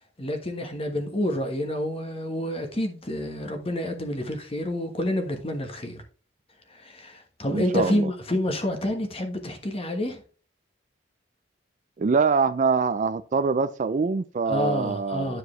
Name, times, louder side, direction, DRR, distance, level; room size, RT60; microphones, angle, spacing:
voice 1, 0.2-6.0 6.7-10.2 14.5-15.4, left 1 dB, 30° left, 1.2 m, -28 dB
voice 2, 7.5-8.1 12.0-15.4, right 5 dB, 40° right, 0.4 m, -24 dB
9.8 x 4.7 x 3.2 m
head